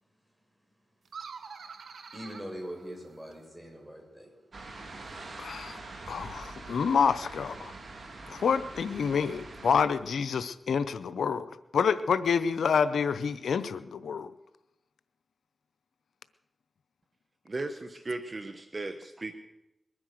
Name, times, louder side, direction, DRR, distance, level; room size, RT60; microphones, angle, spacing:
sound 1, 1.0-3.5, right 5 dB, 85° right, 1.1 m, -46 dB
voice 1, 2.1-4.3, equal, 15° right, -1 dB, 7.9 m, -42 dB
sound 2, 4.5-9.8, right 2 dB, 65° right, 2.9 m, -44 dB
voice 2, 5.4-5.8 6.1-7.7 8.3-11.5 11.7-14.3, left 6 dB, 90° left, 14 dB, 0.6 m, -28 dB
voice 3, 17.4-19.3, right 2 dB, 45° right, 9 dB, 1.2 m, -36 dB
22.0 x 9.7 x 6.4 m, 0.91 s
cardioid pair, 40°, 0 cm